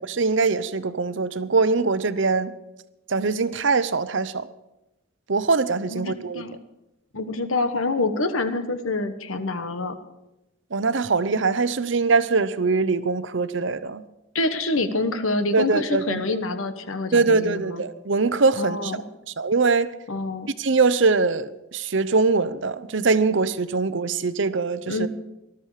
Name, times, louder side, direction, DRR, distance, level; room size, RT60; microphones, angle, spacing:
voice 1, 0.0-2.5 3.1-4.5 5.3-6.4 10.7-14.0 15.5-16.2 17.1-18.9 19.4-19.9 20.6-25.1, right 4 dB, 65° right, 0.7 m, -22 dB
voice 2, 5.9-6.6 7.1-10.0 14.3-17.8 18.6-19.0 20.1-20.5 24.9-25.1, left 2 dB, 80° left, 1.3 m, -26 dB
19.0 x 12.5 x 4.9 m
head